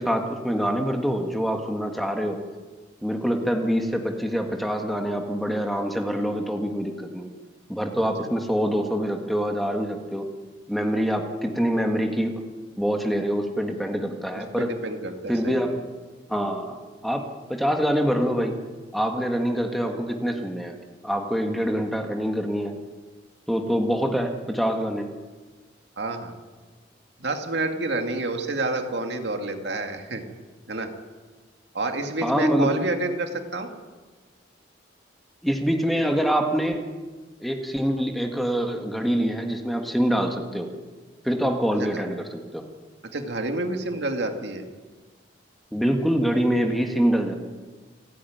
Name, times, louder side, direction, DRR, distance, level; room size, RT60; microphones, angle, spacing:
voice 1, 0.0-2.4 3.0-7.3 7.7-10.3 10.7-12.4 12.8-14.7 15.3-15.8 16.3-16.8 17.0-17.2 17.5-18.6 18.9-20.8 21.0-22.7 23.5-25.1 32.2-32.7 35.4-36.9 37.4-40.7 41.2-42.6 45.7-47.4, equal, ahead, 3 dB, 1.6 m, -25 dB
voice 2, 14.3-15.7 26.0-26.4 27.2-30.2 30.7-30.9 31.7-33.7 41.9-42.0 43.1-44.7, right 2 dB, 65° right, 5 dB, 2.1 m, -29 dB
29.5 x 10.0 x 9.3 m, 1.4 s
head